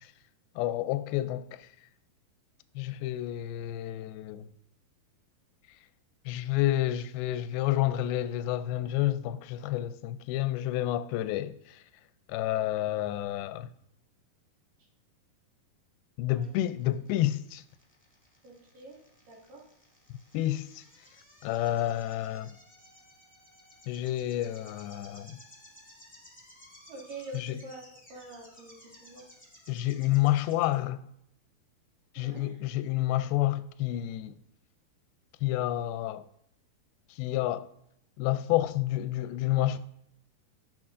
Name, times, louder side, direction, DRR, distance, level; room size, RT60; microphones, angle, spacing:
voice 1, 0.6-1.7 2.8-4.5 6.3-11.8 12.3-13.7 16.2-17.6 20.3-20.8 21.4-22.5 23.9-25.4 27.3-27.5 29.7-31.0 32.2-34.4 35.4-36.2 37.2-37.7 38.2-39.8, left 14 dB, 85° left, 2.3 m, -29 dB
sound 1, 16.4-30.7, left 1 dB, 10° left, 0.5 m, -56 dB
voice 2, 18.4-19.0 19.3-19.6 26.9-27.8 28.1-29.2 32.2-32.6, right 3 dB, 65° right, 3.4 m, -46 dB
15.0 x 6.1 x 2.5 m
omnidirectional pair, 4.5 m